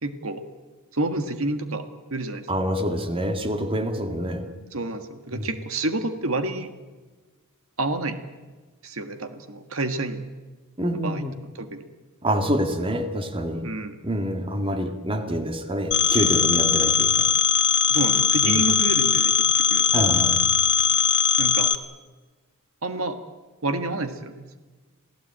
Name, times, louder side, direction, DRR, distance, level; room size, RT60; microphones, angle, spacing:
voice 1, 0.0-0.4 0.9-2.5 4.7-6.7 7.8-8.2 8.8-10.2 11.0-11.2 11.5-11.9 13.6-14.0 17.9-19.9 21.4-21.7 22.8-23.2 23.6-24.6, right 2 dB, 75° right, 8 dB, 1.6 m, -29 dB
voice 2, 2.5-4.5 5.3-5.5 10.8-11.3 12.2-13.7 14.0-17.3 18.4-18.6 19.9-20.4, equal, 25° right, 6 dB, 2.1 m, -26 dB
Telephone, 15.9-21.7, left 7 dB, 55° left, 1.3 m, -20 dB
28.0 x 17.0 x 8.8 m, 1.3 s
head